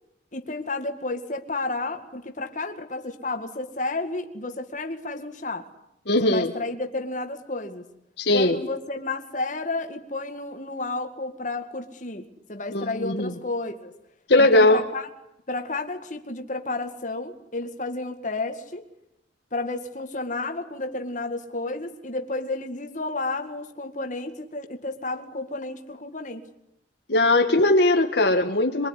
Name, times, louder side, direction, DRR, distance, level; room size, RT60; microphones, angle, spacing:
voice 1, 0.3-5.7 6.2-7.8 8.3-13.9 14.4-15.1 15.5-18.8 19.5-26.4, left 2 dB, 40° left, 5 dB, 2.1 m, -31 dB
voice 2, 6.1-6.5 8.2-8.6 12.7-13.3 14.3-14.8 27.1-28.9, left 2 dB, 65° left, 4 dB, 1.7 m, -19 dB
23.5 x 23.5 x 9.9 m, 0.80 s
head